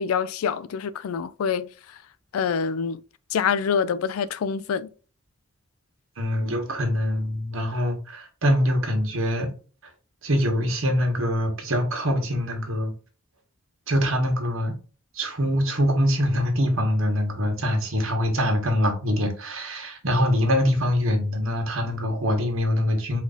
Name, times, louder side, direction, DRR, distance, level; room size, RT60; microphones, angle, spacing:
voice 1, 0.0-1.7 2.3-3.0 3.3-4.9, left 6 dB, 85° left, 0.4 m, -26 dB
voice 2, 6.2-9.5 10.2-12.9 13.9-14.7 15.1-23.2, equal, 70° right, 1.5 m, -24 dB
5.0 x 2.7 x 3.9 m
head